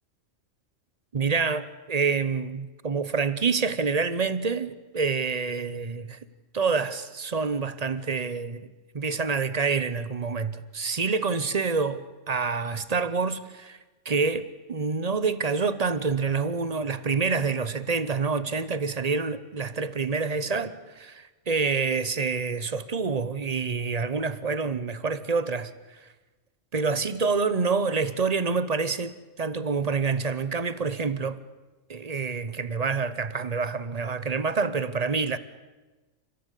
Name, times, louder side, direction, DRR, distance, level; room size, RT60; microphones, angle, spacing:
voice 1, 1.1-6.2 6.5-8.7 8.9-12.0 12.3-13.8 14.0-26.1 26.7-31.4 31.9-35.4, right 4 dB, 35° right, 0.9 m, -27 dB
30.0 x 15.0 x 8.3 m
omnidirectional pair, 1.4 m